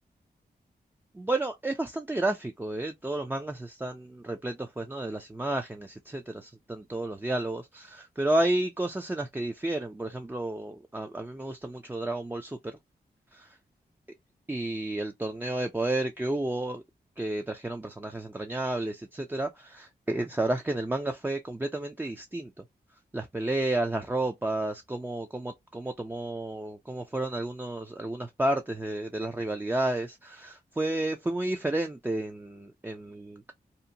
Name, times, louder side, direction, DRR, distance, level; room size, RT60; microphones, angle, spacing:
voice 1, 1.1-12.8 13.3-13.5 14.5-16.8 17.2-22.5 23.1-33.5, right 2 dB, 10° right, 0.4 m, -31 dB
2.8 x 2.1 x 2.6 m
cardioid pair, 55°, 17 cm